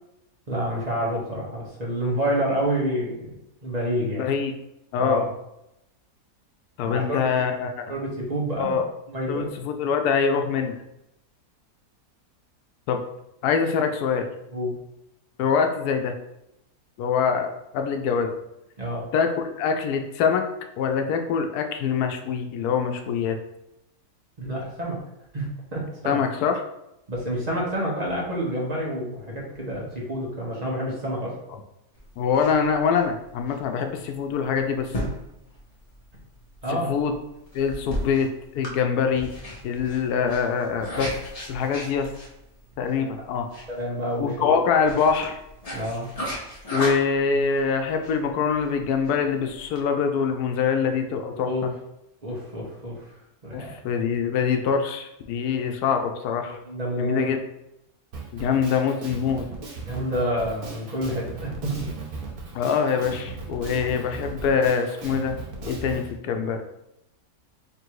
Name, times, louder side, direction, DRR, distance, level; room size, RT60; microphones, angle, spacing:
voice 1, 0.5-3.3 3.6-4.2 5.0-5.2 6.9-7.3 7.9-8.8 9.1-9.5 14.5-14.7 18.8-19.0 24.4-25.0 25.3-26.2 27.1-31.3 36.6-36.9 42.9-43.1 43.7-44.6 45.7-46.1 51.3-51.6 52.2-52.9 53.4-53.7 56.6-57.3 59.8-61.8, equal, 30° right, -3 dB, 0.9 m, -28 dB
voice 2, 4.0-4.5 4.9-5.3 6.8-7.7 8.6-8.9 9.3-10.7 12.9-13.0 13.4-14.3 15.4-16.1 17.0-18.3 19.1-20.5 20.8-23.4 26.0-26.6 32.2-34.9 36.7-37.1 37.5-38.3 38.5-39.3 39.6-41.1 41.5-42.1 42.8-43.5 44.2-45.4 46.7-51.7 53.5-56.6 57.0-57.4 58.3-59.5 62.5-65.4 65.6-66.6, left 6 dB, 90° left, 5 dB, 1.1 m, -24 dB
sound 1, 31.9-49.8, equal, 30° left, 0.9 m, -37 dB
Drum kit, 58.1-66.1, right 4 dB, 70° right, 1.4 m, -37 dB
3.4 x 2.6 x 4.5 m, 0.84 s
omnidirectional pair, 1.6 m